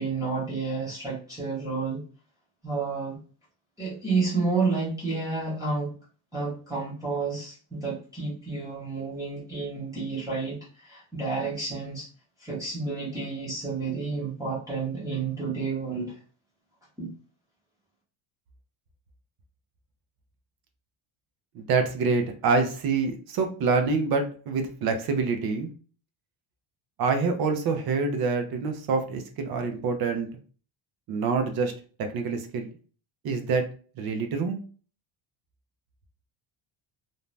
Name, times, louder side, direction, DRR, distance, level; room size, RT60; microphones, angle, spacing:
voice 1, 0.0-2.0 2.6-3.2 3.8-6.0 6.3-12.1 12.4-16.2 17.0-17.1, right 4 dB, 5° right, -8 dB, 0.7 m, -30 dB
voice 2, 21.5-25.7 27.0-30.3 31.1-31.7 32.1-32.7 33.2-33.6 34.0-34.6, right 4 dB, 50° right, 6 dB, 0.5 m, -26 dB
2.6 x 2.1 x 3.1 m, 0.39 s
cardioid pair, 180°, 49 cm